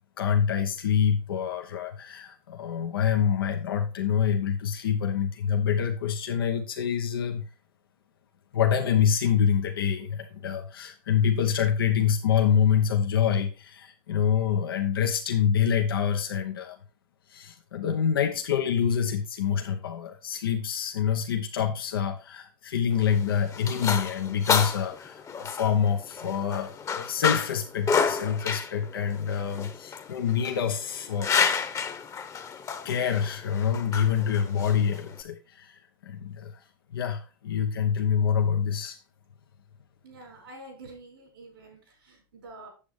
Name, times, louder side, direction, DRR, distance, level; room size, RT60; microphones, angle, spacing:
voice 1, 0.2-7.5 8.5-16.8 17.3-31.5 32.8-36.6 36.9-39.0, left 8 dB, 85° left, 4 dB, 0.9 m, -26 dB
sound 1, 22.9-35.2, left 6 dB, 25° left, 1.0 m, -30 dB
voice 2, 40.0-42.7, right 2 dB, 85° right, 2 dB, 4.8 m, -47 dB
8.4 x 7.3 x 3.2 m, 0.32 s
hypercardioid pair, 95°, 12 cm